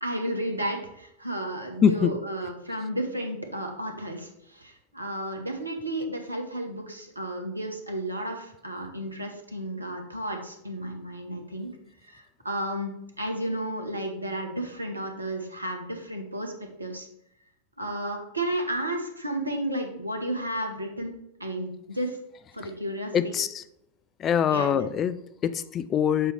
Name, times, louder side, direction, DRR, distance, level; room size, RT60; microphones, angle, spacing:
voice 1, 0.0-11.7 12.1-12.9 13.2-16.5 16.8-17.1 17.8-21.1 21.4-22.2 22.5-23.3 24.5-24.9, right 1 dB, 85° right, 3 dB, 1.1 m, -32 dB
voice 2, 1.8-2.1 23.1-23.6 24.2-26.3, left 8 dB, 30° left, 13 dB, 0.3 m, -24 dB
7.4 x 3.1 x 4.7 m, 0.78 s
figure-of-eight pair, 90°, 0 cm